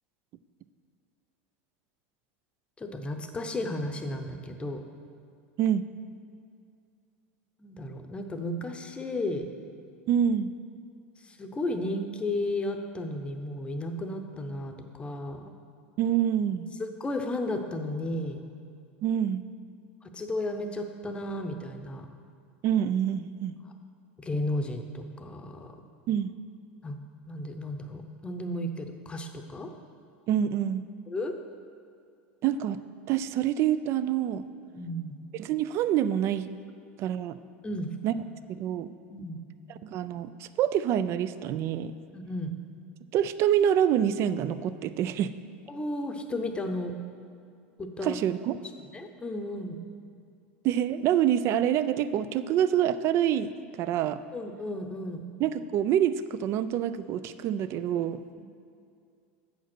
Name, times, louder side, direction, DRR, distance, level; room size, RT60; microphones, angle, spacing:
voice 1, 2.8-4.8 7.6-9.5 11.2-15.4 17.0-18.4 20.1-22.1 24.2-25.8 26.8-27.0 27.3-29.7 31.1-31.3 34.7-35.2 37.6-37.9 39.1-39.4 42.1-42.5 45.7-46.9 47.8-48.2 48.9-49.8 54.3-55.3 58.4-58.5, left 1 dB, 15° left, 6 dB, 0.7 m, -33 dB
voice 2, 10.1-10.5 16.0-16.7 19.0-19.4 22.6-23.6 26.1-26.3 30.3-30.8 32.4-32.8 33.1-34.4 35.4-36.5 37.0-37.4 38.0-38.1 38.5-38.9 39.8-41.9 43.1-45.3 48.0-48.6 50.6-53.5 53.8-54.2 55.4-58.2, right 10 dB, 45° right, 13 dB, 0.4 m, -26 dB
7.9 x 5.0 x 6.1 m, 2.3 s
supercardioid pair, 110°, 6 cm